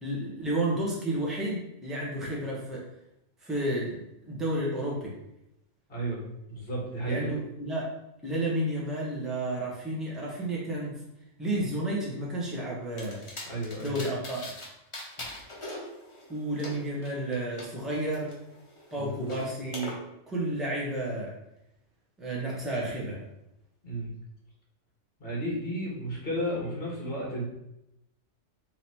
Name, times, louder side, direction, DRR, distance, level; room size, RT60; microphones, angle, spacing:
voice 1, 0.0-2.8 3.4-4.0 4.2-5.1 7.0-7.9 8.2-11.0 11.4-13.2 13.8-14.4 16.3-18.3 18.9-20.0 20.3-21.3 22.2-23.2, right 1 dB, ahead, -5 dB, 1.0 m, -31 dB
voice 2, 5.9-7.3 13.4-14.0 18.9-19.2 23.8-24.1 25.2-27.5, right 1 dB, 45° left, -2 dB, 1.6 m, -33 dB
sound 1, 13.0-14.7 14.9-17.7 18.1-19.9, left 1 dB, 25° left, 0.9 m, -42 dB
3.9 x 3.0 x 4.3 m, 0.84 s
omnidirectional pair, 1.3 m